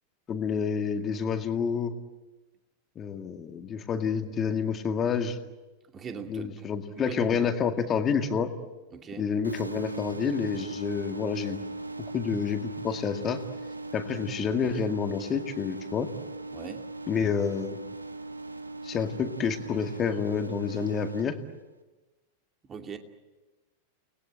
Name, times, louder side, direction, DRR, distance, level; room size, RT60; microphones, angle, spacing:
voice 1, 0.3-1.9 3.0-5.4 6.3-8.5 9.2-11.6 12.1-13.4 13.9-16.1 17.1-17.8 18.8-21.4, left 6 dB, 25° left, 7 dB, 2.1 m, -28 dB
voice 2, 5.9-6.7 7.0-7.5 8.9-9.3 16.5-16.9 22.7-23.0, right 6 dB, 25° right, 5 dB, 2.5 m, -40 dB
sound 1, 9.4-21.2, right 2 dB, 85° right, 1.6 m, -39 dB
30.0 x 20.0 x 9.0 m, 1.2 s
figure-of-eight pair, 90°, 0 cm